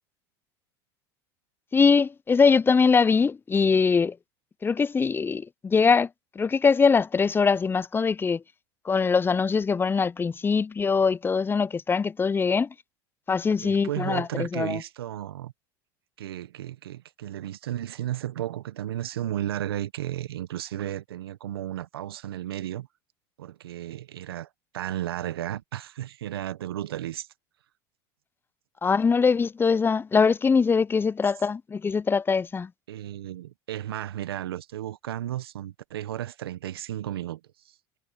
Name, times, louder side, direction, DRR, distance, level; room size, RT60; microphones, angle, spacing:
voice 1, 1.7-4.2 4.6-6.1 6.4-8.4 8.9-12.7 13.3-14.8 28.8-32.7, left 5 dB, 15° left, 0.4 m, -22 dB
voice 2, 13.6-15.5 16.2-22.9 23.4-24.5 24.7-27.3 32.9-37.7, right 12 dB, 85° right, 1.1 m, -34 dB
hypercardioid pair, 80°, 12 cm